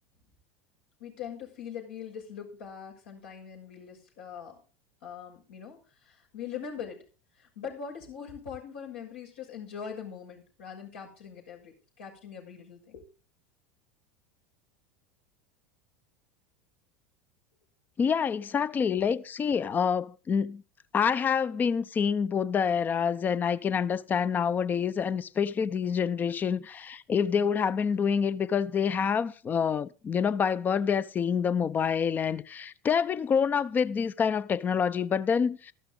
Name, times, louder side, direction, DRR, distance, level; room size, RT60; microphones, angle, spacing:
voice 1, 1.0-4.6 5.0-7.0 7.4-13.0, left 7 dB, 75° left, 6.5 m, -42 dB
voice 2, 18.0-20.6 20.9-35.7, left 7 dB, 30° left, 0.8 m, -27 dB
14.0 x 12.0 x 3.9 m
hypercardioid pair, 80°, 6 cm